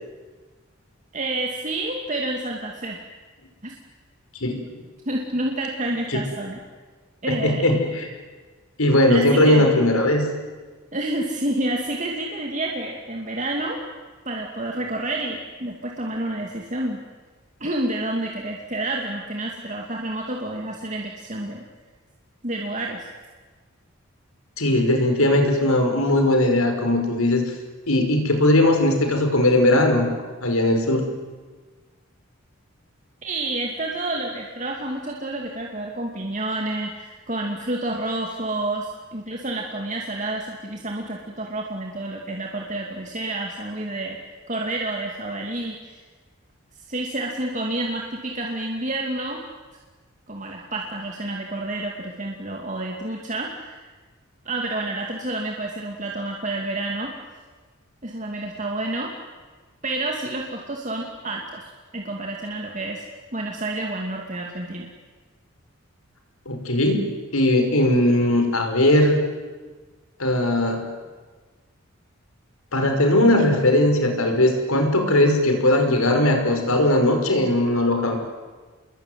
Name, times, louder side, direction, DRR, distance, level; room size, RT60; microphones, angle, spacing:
voice 1, 1.1-3.0 3.6-3.7 5.1-6.6 7.2-7.7 9.1-9.7 10.9-13.8 14.3-17.0 17.6-21.6 22.4-23.1 33.2-44.2 44.5-46.0 46.9-49.4 50.3-53.8 54.4-57.1 58.0-59.1 59.8-61.6 61.9-63.0 63.3-64.9, right 2 dB, 35° right, 0 dB, 2.5 m, -29 dB
voice 2, 7.3-8.1 8.8-10.3 24.6-27.4 27.9-30.1 30.4-31.1 66.5-69.2 70.2-70.9 72.7-78.2, left 1 dB, 85° left, 5 dB, 5.4 m, -19 dB
28.5 x 21.5 x 9.5 m, 1.4 s
head